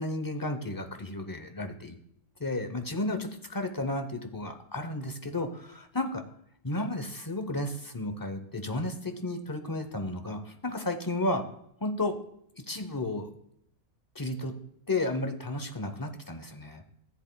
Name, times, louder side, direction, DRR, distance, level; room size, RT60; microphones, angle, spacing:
voice 1, 0.0-2.0 2.4-6.2 6.6-11.4 11.8-12.2 12.5-13.3 14.1-14.5 14.9-16.8, left 2 dB, 25° left, 6 dB, 0.5 m, -33 dB
14.0 x 7.9 x 2.2 m, 0.73 s
omnidirectional pair, 1.4 m